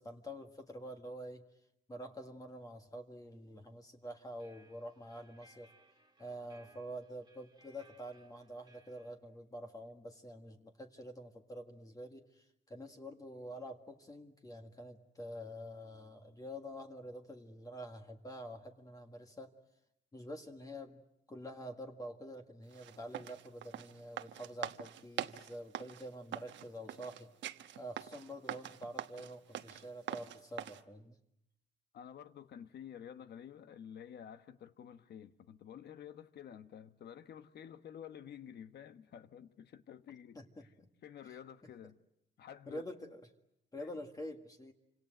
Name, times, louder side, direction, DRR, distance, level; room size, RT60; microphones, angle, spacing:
voice 1, 0.0-1.4 1.9-5.7 6.2-19.5 20.1-21.0 21.3-31.2 40.3-40.9 41.3-41.4 42.7-43.2 43.7-44.7, equal, 20° left, 1.7 m, -47 dB
sound 1, 4.0-9.1, right 2 dB, 25° right, 1.8 m, -66 dB
sound 2, 22.7-30.8, right 11 dB, 85° right, 1.2 m, -44 dB
voice 2, 31.9-40.7 41.0-42.0 42.4-42.8 43.8-43.9, left 9 dB, 65° left, 1.2 m, -51 dB
28.5 x 26.5 x 7.8 m
cardioid pair, 155°, 19 cm